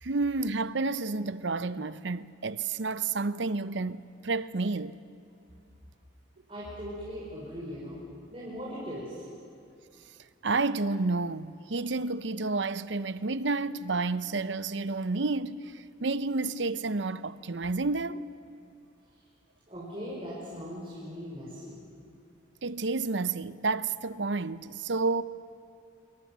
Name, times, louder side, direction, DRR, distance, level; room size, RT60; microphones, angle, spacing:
voice 1, 0.0-5.0 10.4-18.3 22.6-25.2, right 3 dB, 70° right, 0.8 m, -30 dB
voice 2, 6.5-8.0 8.3-9.2 19.7-21.8, equal, 30° right, 5.5 m, -39 dB
27.5 x 23.5 x 7.5 m
head